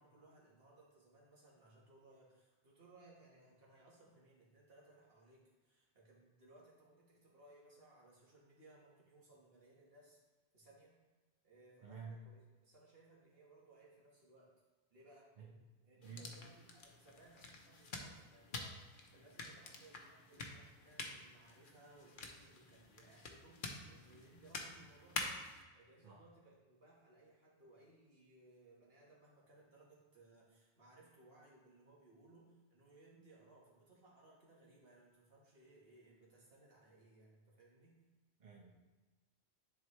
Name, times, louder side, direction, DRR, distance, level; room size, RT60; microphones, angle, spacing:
voice 1, 0.0-10.2 10.5-11.0 11.4-14.5 14.9-15.3 15.8-25.4 25.7-38.0, right 2 dB, 65° right, -4 dB, 1.8 m, -64 dB
voice 2, 11.8-12.2 15.4-15.5 16.0-16.4 26.0-26.2 38.4-38.7, right 4 dB, 45° right, -4 dB, 1.1 m, -51 dB
sound 1, 16.0-25.6, left 3 dB, 55° left, 0.9 m, -48 dB
10.5 x 4.0 x 3.1 m, 1.2 s
omnidirectional pair, 1.1 m